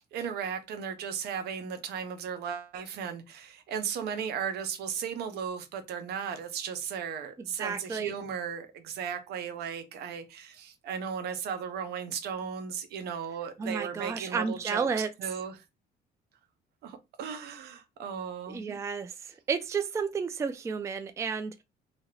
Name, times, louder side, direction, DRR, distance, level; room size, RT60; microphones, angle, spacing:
voice 1, 0.0-15.6 16.8-18.8, right 7 dB, 75° right, 0.8 m, -36 dB
voice 2, 7.4-8.1 13.6-15.1 18.5-21.6, right 5 dB, 15° right, 0.3 m, -32 dB
2.8 x 2.4 x 3.1 m
cardioid pair, 110°, 17 cm